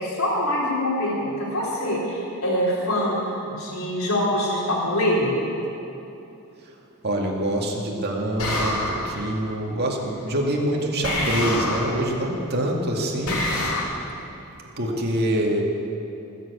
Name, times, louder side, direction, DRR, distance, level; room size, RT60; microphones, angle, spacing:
voice 1, 0.0-3.2 3.5-5.4, left 1 dB, 65° left, -4 dB, 4.1 m, -24 dB
voice 2, 7.0-13.7 14.8-15.6, right 1 dB, 45° right, -1 dB, 2.1 m, -25 dB
sound 1, 8.4-9.3 11.0-12.1 13.3-13.8, left 1 dB, 85° left, 3.2 m, -26 dB
19.5 x 7.8 x 8.5 m, 2.9 s
head